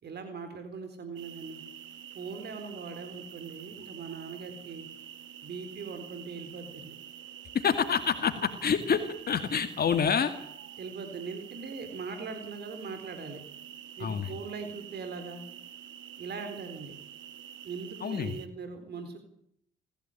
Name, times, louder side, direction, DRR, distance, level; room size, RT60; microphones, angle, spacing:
voice 1, 0.0-1.6 2.1-4.9 5.4-6.9 10.8-13.4 14.0-15.4 16.2-16.9 17.6-19.2, right 4 dB, 55° right, 8 dB, 4.0 m, -40 dB
sound 1, 1.2-18.5, right 9 dB, 75° right, 2.2 m, -47 dB
voice 2, 7.5-10.3 14.0-14.4 18.0-18.4, left 7 dB, 50° left, 8 dB, 2.3 m, -27 dB
28.5 x 15.5 x 9.0 m, 0.73 s
cardioid pair, 90°, 20 cm